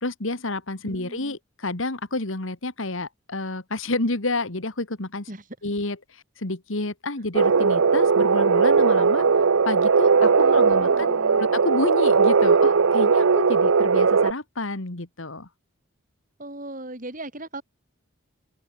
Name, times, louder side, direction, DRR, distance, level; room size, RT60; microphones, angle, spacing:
voice 1, 0.0-5.3 5.6-6.0 6.4-9.3 9.7-15.5, left 2 dB, 70° left, 2.1 m, -29 dB
voice 2, 0.8-1.4 5.3-5.4 10.4-11.4 16.4-17.6, right 1 dB, 40° right, 4.5 m, -38 dB
sound 1, 7.3-14.3, right 5 dB, 80° right, 0.7 m, -18 dB
open air
head